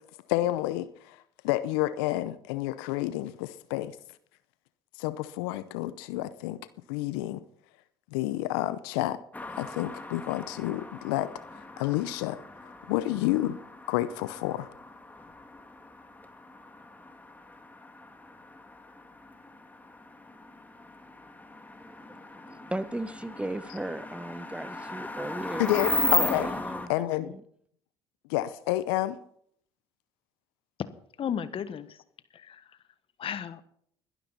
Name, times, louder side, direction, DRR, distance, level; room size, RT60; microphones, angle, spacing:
voice 1, 0.3-1.2 1.4-3.9 5.0-6.6 6.9-7.4 8.1-9.2 9.6-12.4 12.9-13.6 13.9-14.7 25.6-26.5 26.9-27.3 28.3-29.2, left 15 dB, 75° left, 0.7 m, -29 dB
sound 1, 9.3-26.9, left 2 dB, 15° left, 2.0 m, -36 dB
voice 2, 21.8-25.8 26.2-27.4, right 1 dB, 10° right, 1.2 m, -37 dB
voice 3, 31.2-32.0 32.3-32.8 33.2-33.7, left 8 dB, 45° left, 1.3 m, -34 dB
21.5 x 12.0 x 4.1 m
hypercardioid pair, 60°, 13 cm